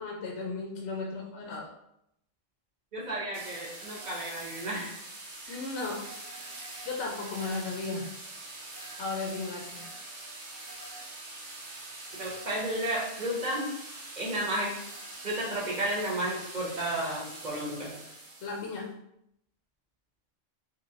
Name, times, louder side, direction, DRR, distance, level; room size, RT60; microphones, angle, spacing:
voice 1, 0.0-1.7 5.5-6.0 6.9-8.1 9.0-9.8 18.4-18.9, left 3 dB, 70° left, -1 dB, 0.9 m, -35 dB
voice 2, 2.9-5.0 5.5-5.6 12.2-13.7 14.2-14.7 15.2-17.9, right 1 dB, 40° right, -3 dB, 0.8 m, -32 dB
sound 1, 3.3-18.8, right 2 dB, 60° right, 1.0 m, -44 dB
3.0 x 3.0 x 2.6 m, 0.77 s
omnidirectional pair, 1.2 m